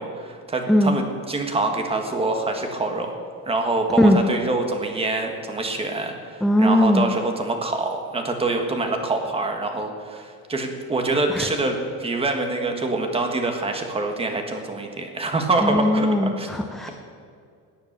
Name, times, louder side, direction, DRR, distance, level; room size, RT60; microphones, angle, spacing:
voice 1, 0.0-3.1 3.4-16.5, right 2 dB, 15° right, 4 dB, 1.6 m, -25 dB
voice 2, 6.4-7.0 11.3-11.5 15.6-16.9, left 1 dB, ahead, 4 dB, 0.5 m, -19 dB
18.0 x 9.5 x 6.7 m, 2.3 s
cardioid pair, 170°, 35 cm